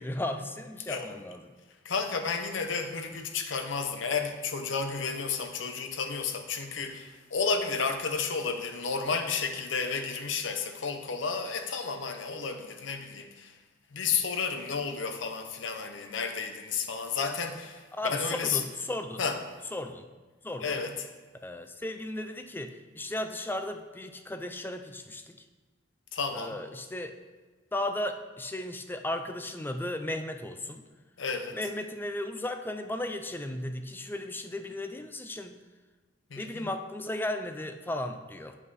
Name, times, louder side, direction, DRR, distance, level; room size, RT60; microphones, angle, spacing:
voice 1, 0.0-1.5 17.9-19.2 19.7-20.1 20.4-20.8 21.4-25.4 26.3-27.1 27.7-30.8 31.5-35.6 36.4-38.6, left 1 dB, 10° left, 7 dB, 0.4 m, -35 dB
voice 2, 1.8-13.6 13.9-18.6 19.2-19.4 20.6-20.9 26.1-26.6 31.2-31.6 36.3-36.7, left 5 dB, 70° left, 6 dB, 0.7 m, -32 dB
8.1 x 5.4 x 4.1 m, 1.3 s
head